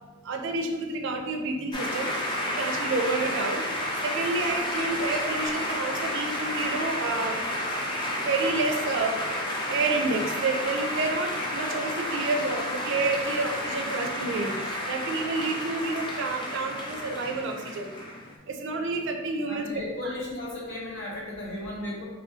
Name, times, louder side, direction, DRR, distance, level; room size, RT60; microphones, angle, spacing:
voice 1, 0.2-2.1 2.5-3.6 4.0-7.4 8.2-9.2 9.7-14.5 14.9-17.9 18.5-20.1, right 3 dB, 60° right, 4 dB, 0.4 m, -29 dB
sound 1, 1.7-18.4, left 1 dB, 25° left, 0.4 m, -31 dB
sound 2, 4.6-7.7 8.8-9.2, equal, ahead, 1.0 m, -51 dB
voice 2, 19.5-22.0, left 1 dB, 60° left, -5 dB, 1.0 m, -35 dB
3.0 x 2.6 x 2.7 m, 1.2 s
head